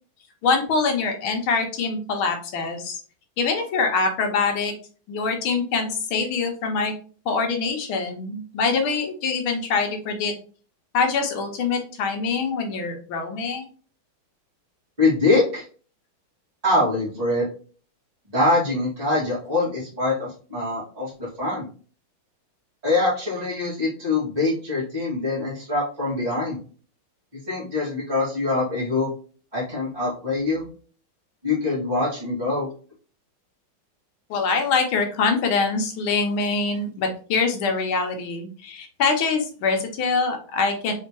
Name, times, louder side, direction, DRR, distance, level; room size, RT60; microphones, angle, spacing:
voice 1, 0.4-3.0 3.4-4.7 5.1-6.9 7.2-10.3 10.9-13.7 34.3-40.9, left 4 dB, 75° left, 4 dB, 1.6 m, -24 dB
voice 2, 15.0-15.6 16.6-17.5 18.3-21.7 22.8-26.6 27.5-29.1 29.5-30.6 31.4-32.7, left 2 dB, 20° right, -8 dB, 1.9 m, -24 dB
4.2 x 3.7 x 2.9 m, 0.40 s
omnidirectional pair, 2.3 m